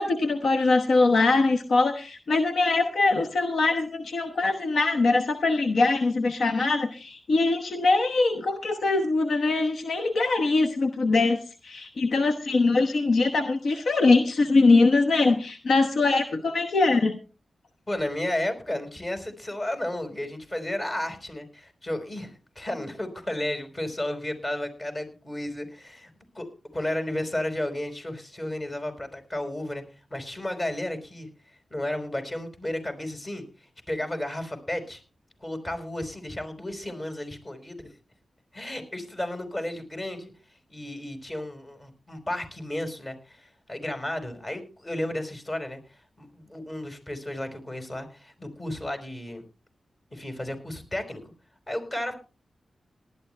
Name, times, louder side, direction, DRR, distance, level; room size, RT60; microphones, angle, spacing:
voice 1, 0.0-17.2, left 3 dB, 75° left, 5 dB, 1.0 m, -22 dB
voice 2, 17.9-26.1 26.3-26.5 26.7-29.8 30.1-31.3 31.7-33.4 33.9-35.0 35.4-37.9 38.5-40.3 40.7-45.8 46.2-49.4 50.1-51.2 51.7-52.1, left 1 dB, 35° left, 7 dB, 5.1 m, -33 dB
19.0 x 12.0 x 3.3 m, 0.33 s
cardioid pair, 50°, 0 cm